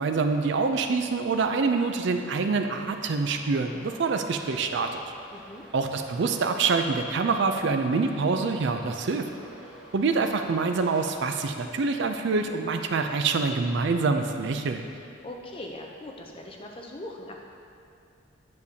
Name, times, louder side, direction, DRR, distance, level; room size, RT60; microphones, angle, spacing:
voice 1, 0.0-5.0 5.7-9.3 9.9-14.8, right 4 dB, 60° right, 6 dB, 0.4 m, -26 dB
Traffic noise roadway noise, 2.9-11.2, right 1 dB, 5° right, 1.1 m, -48 dB
voice 2, 5.3-5.6 15.2-17.4, left 1 dB, 25° left, 1 dB, 0.6 m, -40 dB
8.3 x 6.7 x 2.8 m, 2.5 s
head